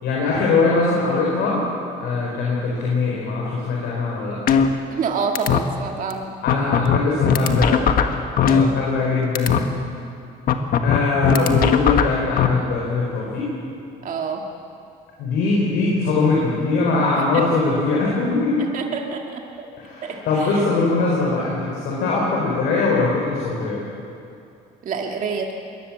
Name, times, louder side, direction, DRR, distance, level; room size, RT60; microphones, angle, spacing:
voice 1, 0.0-1.6 2.0-4.4 6.4-7.9 8.4-9.6 10.8-13.5 15.2-18.7 19.8-23.8, left 3 dB, 80° left, -3 dB, 4.5 m, -21 dB
sound 1, 4.5-5.1 5.4-5.6 6.1-6.2 6.5-9.1 9.4-9.6 10.5-12.5, left 7 dB, 60° left, 1.5 m, -18 dB
voice 2, 4.6-6.3 8.4-8.8 14.0-14.4 17.2-17.4 18.6-19.7 20.0-20.7 24.8-25.5, right 5 dB, 50° right, 2 dB, 1.9 m, -28 dB
22.0 x 18.0 x 7.4 m, 2.6 s
cardioid pair, 110°, 17 cm